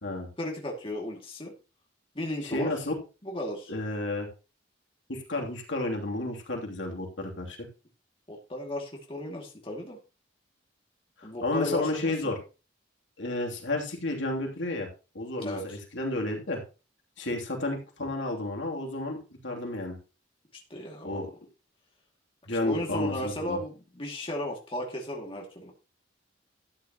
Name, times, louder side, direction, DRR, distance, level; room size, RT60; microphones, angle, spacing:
voice 1, 0.4-1.5 2.1-2.7 3.2-3.7 8.3-10.0 11.2-12.1 15.4-15.8 20.7-21.3 22.5-25.7, left 1 dB, 30° left, 0 dB, 2.3 m, -35 dB
voice 2, 2.4-2.9 3.7-4.3 5.1-7.7 11.2-12.4 13.2-14.9 15.1-16.6 17.2-19.2 19.4-20.0 21.0-21.3 22.5-23.6, left 2 dB, 80° left, 1 dB, 2.9 m, -31 dB
12.5 x 9.5 x 3.0 m, 0.31 s
head